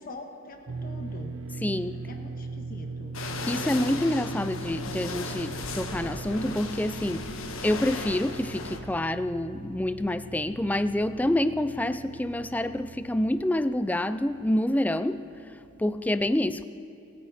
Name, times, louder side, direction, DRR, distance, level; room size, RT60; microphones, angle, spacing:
voice 1, 0.0-1.3 2.1-3.1, left 2 dB, 40° left, 4 dB, 1.5 m, -43 dB
sound 1, 0.7-13.4, right 3 dB, 70° right, 0.6 m, -40 dB
voice 2, 1.6-2.0 3.5-16.6, left 1 dB, 5° left, 12 dB, 0.3 m, -27 dB
sound 2, 3.1-8.8, left 3 dB, 75° left, 1.3 m, -36 dB
29.0 x 9.9 x 4.3 m, 2.9 s
head